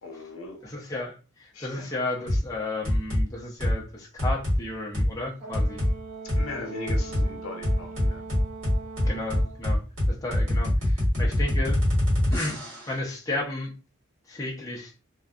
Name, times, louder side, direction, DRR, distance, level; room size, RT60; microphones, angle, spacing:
voice 1, 0.0-0.7 1.5-2.0 6.2-8.3, left 3 dB, 90° left, 0.7 m, -39 dB
voice 2, 0.6-5.8 9.0-9.8 10.1-11.8 12.3-13.7 14.3-14.9, left 2 dB, 15° left, 0.5 m, -33 dB
sound 1, 2.3-2.5 2.8-3.2 3.6-3.8 4.2-4.6 4.9-5.1 5.5-5.9 6.3-6.4 6.9-7.3 7.6-12.9, left 1 dB, 65° right, 1.3 m, -24 dB
Brass instrument, 5.4-9.6, right 4 dB, 40° right, 0.5 m, -41 dB
2.6 x 2.1 x 2.3 m
head